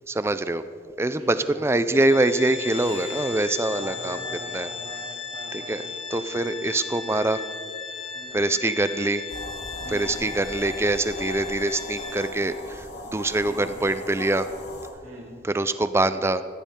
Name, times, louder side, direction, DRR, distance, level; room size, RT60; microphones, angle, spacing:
voice 1, 0.1-0.6 1.0-4.2 4.5-4.7 5.5-5.8 6.1-7.4 8.3-9.2 9.9-12.9 13.1-14.5 15.4-16.4, right 2 dB, 15° right, 12 dB, 0.4 m, -24 dB
voice 2, 1.2-1.6 3.7-5.1 5.3-5.8 8.1-8.4 9.8-10.1 13.4-13.7 15.0-15.3, right 1 dB, 35° right, -6 dB, 3.0 m, -41 dB
Organ, 1.9-12.6, left 5 dB, 25° left, 1.4 m, -36 dB
Sawing, 2.6-4.5, right 3 dB, 65° right, 2.9 m, -47 dB
sound 1, 9.3-14.9, left 2 dB, 70° left, 1.7 m, -38 dB
15.5 x 13.5 x 3.7 m, 2.3 s
head